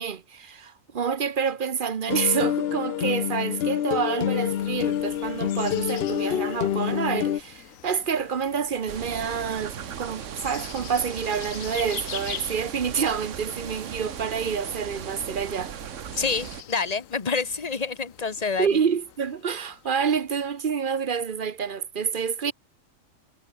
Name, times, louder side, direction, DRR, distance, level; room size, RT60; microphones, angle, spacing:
voice 1, 0.0-15.7 18.6-22.5, right 6 dB, 45° right, 0.9 m, -28 dB
sound 1, 2.1-7.4, left 11 dB, 60° left, 0.8 m, -27 dB
sound 2, 4.4-21.2, left 9 dB, 80° left, 1.3 m, -44 dB
sound 3, 8.9-16.6, right 9 dB, 70° right, 1.3 m, -37 dB
voice 2, 16.2-18.7, left 5 dB, 30° left, 1.3 m, -27 dB
omnidirectional pair, 1.4 m